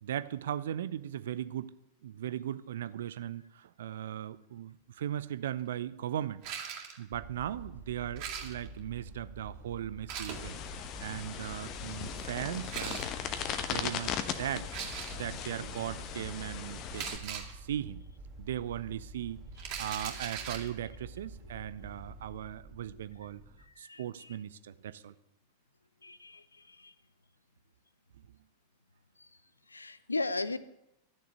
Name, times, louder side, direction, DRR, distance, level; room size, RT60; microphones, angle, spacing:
voice 1, 0.0-1.7 2.0-6.4 7.0-10.6 11.0-13.1 13.7-14.7 15.1-18.0 18.4-19.4 19.8-23.4 23.8-25.1, right 11 dB, 60° right, 15 dB, 0.6 m, -38 dB
sound 1, 6.4-7.0 8.2-8.8 10.1-10.4 12.5-13.1 14.7-15.3 16.9-17.5 19.6-20.7, right 8 dB, 45° right, 2.6 m, -39 dB
sound 2, 7.1-23.7, right 2 dB, 20° right, 2.8 m, -49 dB
sound 3, 10.3-17.2, left 8 dB, 35° left, 1.1 m, -38 dB
voice 2, 21.5-21.9 22.9-23.0 23.6-24.4 26.0-26.9 29.2-29.3 29.7-30.6, left 3 dB, 80° left, 16 dB, 0.7 m, -38 dB
12.0 x 7.0 x 9.5 m, 0.84 s
figure-of-eight pair, 90°, 0 cm